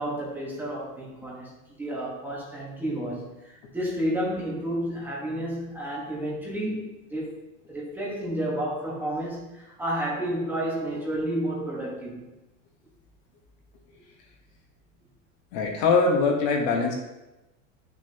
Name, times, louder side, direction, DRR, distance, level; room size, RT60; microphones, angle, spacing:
voice 1, 0.0-7.3 7.7-12.3, right 1 dB, 5° right, -5 dB, 1.3 m, -31 dB
voice 2, 15.5-17.0, left 4 dB, 40° left, 1 dB, 1.2 m, -22 dB
11.0 x 6.5 x 2.9 m, 1.0 s
supercardioid pair, 175°, 39 cm